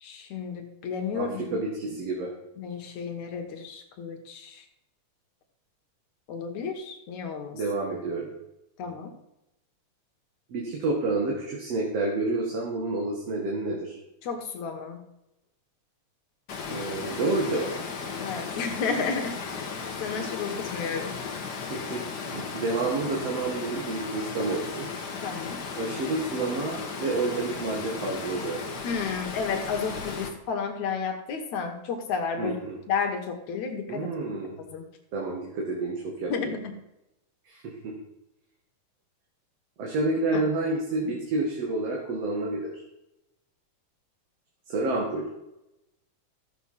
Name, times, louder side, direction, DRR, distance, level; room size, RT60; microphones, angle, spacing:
voice 1, 0.0-1.5 2.6-4.6 6.3-7.6 8.8-9.1 14.2-15.0 18.2-19.6 20.0-21.1 25.2-25.6 28.8-32.5 32.9-34.1 34.6-34.9 36.3-36.7 40.3-40.4, left 5 dB, 75° left, 4 dB, 2.6 m, -32 dB
voice 2, 1.1-2.3 7.5-8.3 10.5-14.0 16.7-17.9 21.6-22.0 22.3-24.9 25.8-28.6 32.4-32.8 33.9-34.6 35.1-36.5 37.5-37.9 39.8-42.8 44.7-45.3, right 2 dB, 60° right, -2 dB, 2.9 m, -29 dB
Water, 16.5-30.3, left 5 dB, 45° left, 1.6 m, -36 dB
14.0 x 7.5 x 5.7 m, 0.89 s
omnidirectional pair, 3.4 m